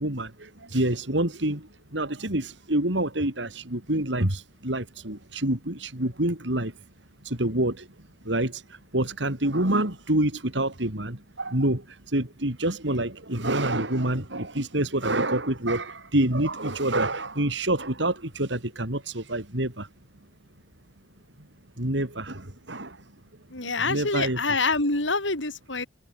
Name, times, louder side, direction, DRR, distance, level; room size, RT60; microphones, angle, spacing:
voice 1, 0.0-6.7 7.2-7.9 8.2-8.6 8.9-19.9 21.8-23.0 23.6-24.4, right 1 dB, 70° right, 4.5 m, -27 dB
voice 2, 23.5-25.9, left 3 dB, 85° left, 6.3 m, -26 dB
head